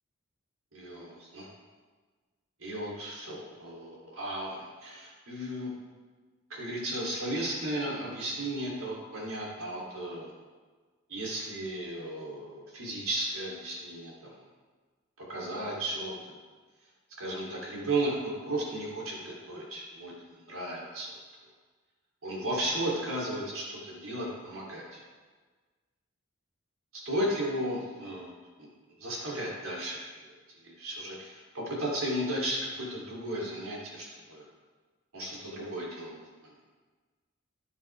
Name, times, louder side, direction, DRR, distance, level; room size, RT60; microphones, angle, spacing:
voice 1, 0.7-1.5 2.6-5.7 6.5-10.3 11.1-14.3 15.3-16.1 17.2-21.1 22.2-25.0 26.9-28.3 28.6-28.7 29.0-30.0 30.6-34.4 35.1-36.5, right 1 dB, 85° right, -4 dB, 3.6 m, -35 dB
14.0 x 9.7 x 3.7 m, 1.4 s
head